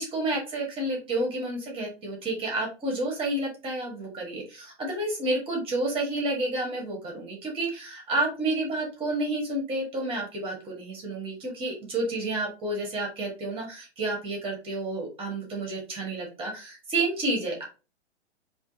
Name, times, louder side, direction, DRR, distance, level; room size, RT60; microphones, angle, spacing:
voice 1, 0.0-17.6, right 2 dB, 15° right, -1 dB, 1.5 m, -30 dB
3.4 x 2.9 x 2.7 m, 0.33 s
figure-of-eight pair, 120°, 34 cm